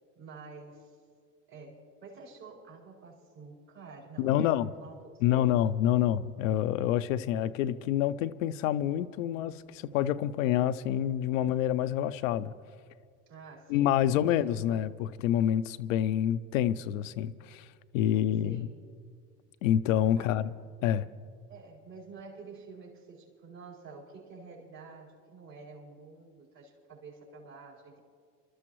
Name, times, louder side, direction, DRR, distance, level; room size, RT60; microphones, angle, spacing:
voice 1, 0.1-1.0 1.5-5.5 13.3-14.9 18.1-18.7 20.2-20.5 21.5-28.0, right 4 dB, 70° right, 4.6 m, -49 dB
voice 2, 4.2-4.7 5.2-12.5 13.7-17.7 17.9-18.7 19.6-20.5 20.8-21.1, left 11 dB, 90° left, 0.5 m, -27 dB
29.0 x 13.0 x 3.1 m
hypercardioid pair, 75°, 38 cm